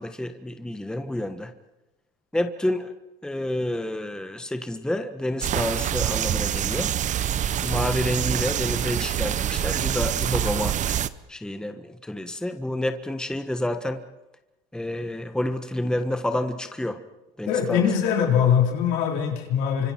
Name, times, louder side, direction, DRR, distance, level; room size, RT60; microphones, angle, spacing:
voice 1, 0.0-1.5 2.3-2.9 3.2-6.9 7.6-10.8 11.3-14.0 14.7-17.0 17.4-17.9, left 1 dB, 5° left, 7 dB, 1.4 m, -29 dB
sound 1, 5.4-11.1, right 10 dB, 40° right, 0.8 m, -26 dB
voice 2, 17.4-19.9, left 8 dB, 80° left, 1 dB, 4.3 m, -22 dB
28.5 x 25.5 x 4.6 m, 0.98 s
supercardioid pair, 100°, 18 cm